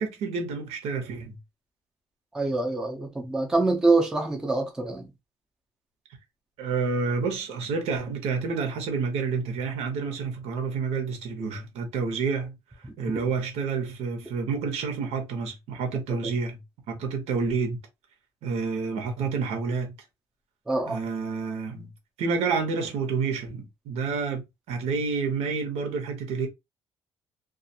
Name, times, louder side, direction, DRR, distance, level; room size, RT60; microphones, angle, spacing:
voice 1, 0.0-1.4 6.6-12.6 13.0-16.6 16.9-17.8 18.4-19.9 20.9-21.9 22.2-26.5, right 5 dB, 85° right, 0.9 m, -29 dB
voice 2, 2.3-5.1 16.1-16.2 20.7-21.0, right 3 dB, 5° right, 0.5 m, -25 dB
2.4 x 2.3 x 2.7 m
cardioid pair, 175°, 11 cm